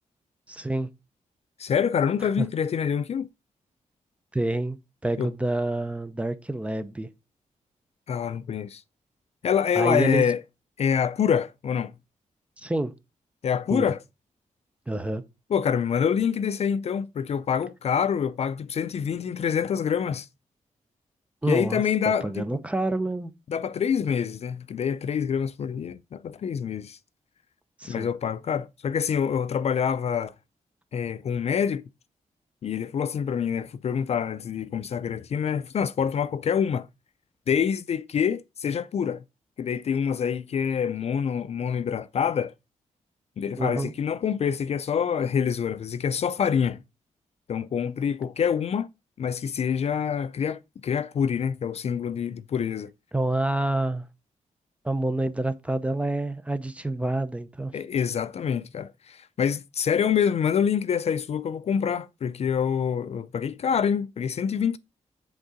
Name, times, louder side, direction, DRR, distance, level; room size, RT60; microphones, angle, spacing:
voice 1, 0.5-0.9 2.4-2.5 4.3-4.8 5.0-7.1 9.8-10.3 12.6-12.9 13.7-13.9 14.9-15.2 21.4-23.3 27.8-28.1 43.6-43.9 53.1-54.0 54.8-57.7, right 2 dB, 10° right, 0.6 m, -27 dB
voice 2, 1.6-3.3 5.2-5.3 8.1-8.8 9.4-10.4 10.8-11.9 13.4-14.0 15.5-20.3 21.5-22.4 23.5-27.0 27.9-30.3 30.9-31.8 32.6-36.9 37.5-39.2 39.6-42.5 43.4-46.8 47.5-48.9 49.2-52.9 57.7-64.8, left 7 dB, 55° left, 0.4 m, -26 dB
8.0 x 3.7 x 5.0 m
wide cardioid pair, 145°, 13 cm